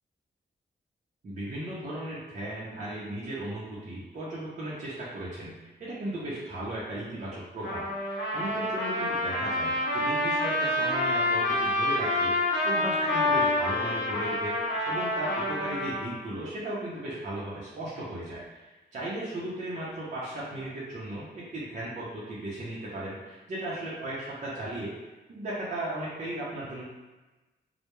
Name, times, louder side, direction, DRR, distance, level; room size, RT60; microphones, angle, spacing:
voice 1, 1.2-12.3 12.6-24.9 25.3-26.8, right 1 dB, 40° right, -8 dB, 0.5 m, -36 dB
Trumpet, 7.6-16.0, left 1 dB, 90° left, 0.6 m, -27 dB
2.2 x 2.0 x 2.9 m, 1.2 s
wide cardioid pair, 145°, 18 cm